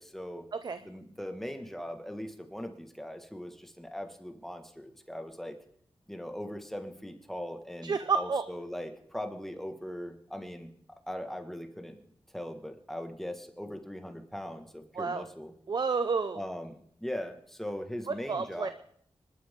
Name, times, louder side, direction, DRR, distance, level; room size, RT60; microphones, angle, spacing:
voice 1, 0.0-0.4 0.8-5.6 6.1-10.7 11.1-12.0 12.3-15.5 16.4-18.7, equal, 5° left, 5 dB, 1.7 m, -40 dB
voice 2, 7.8-8.4 14.9-15.2 15.7-16.4 18.1-18.7, right 5 dB, 50° right, 10 dB, 0.7 m, -30 dB
25.5 x 12.0 x 3.7 m, 0.66 s
wide cardioid pair, 115°, 9 cm